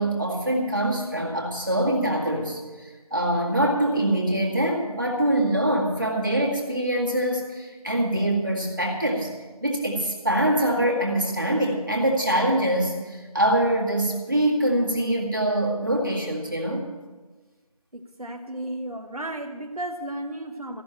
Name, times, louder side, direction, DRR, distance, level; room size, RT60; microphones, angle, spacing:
voice 1, 0.0-9.3 9.6-16.9, right 1 dB, 30° right, -2 dB, 2.0 m, -24 dB
voice 2, 17.9-20.8, right 1 dB, 75° right, 4 dB, 1.1 m, -34 dB
14.5 x 6.4 x 8.8 m, 1.3 s
figure-of-eight pair, 180°, 19 cm